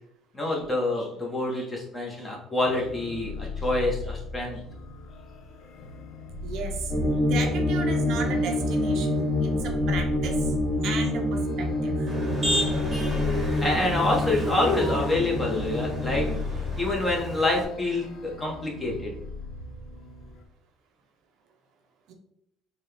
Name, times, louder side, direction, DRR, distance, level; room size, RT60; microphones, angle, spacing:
voice 1, 0.3-4.6 13.6-16.3 16.8-19.1, left 2 dB, 15° left, -2 dB, 1.0 m, -27 dB
sound 1, 2.6-20.4, left 4 dB, 55° left, 0.5 m, -38 dB
voice 2, 6.4-6.9 7.2-10.5 10.8-12.1 22.1-22.2, right 5 dB, 65° right, 4 dB, 0.6 m, -35 dB
sound 2, 6.9-16.4, left 1 dB, 40° left, 0.9 m, -27 dB
Motor vehicle (road), 12.1-17.6, equal, 15° right, 1.1 m, -32 dB
3.9 x 2.3 x 3.3 m, 0.77 s
cardioid pair, 115°, 0 cm